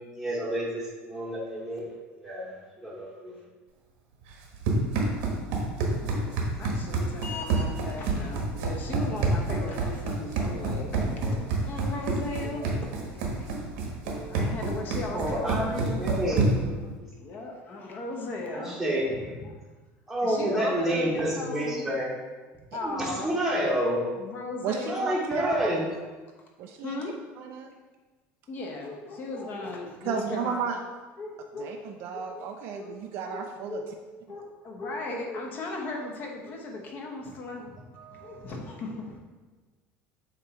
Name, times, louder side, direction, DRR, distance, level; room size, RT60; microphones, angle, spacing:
voice 1, 0.1-1.8 2.2-2.5 2.8-3.4 15.1-16.7 17.0-17.1 18.5-19.1 20.1-22.1 22.8-24.1 24.9-25.8, right 1 dB, 5° right, -6 dB, 1.0 m, -29 dB
Run, 4.3-16.8, right 3 dB, 80° right, 1.2 m, -28 dB
voice 2, 5.8-6.3 6.6-13.5 14.0-16.5 17.2-19.5 20.2-21.9 22.7-23.3 24.2-25.1 26.8-27.1 28.5-30.8 31.2-31.9 32.1-32.4 32.7-32.9 33.2-33.9 34.3-37.8 38.1-39.2, left 2 dB, 35° left, 0 dB, 0.9 m, -37 dB
voice 3, 24.6-26.0 26.6-27.0 27.4-27.7 30.0-30.8 31.6-33.8 38.0-38.5, right 6 dB, 50° right, 3 dB, 0.4 m, -34 dB
7.6 x 2.9 x 4.4 m, 1.3 s
cardioid pair, 160°, 5 cm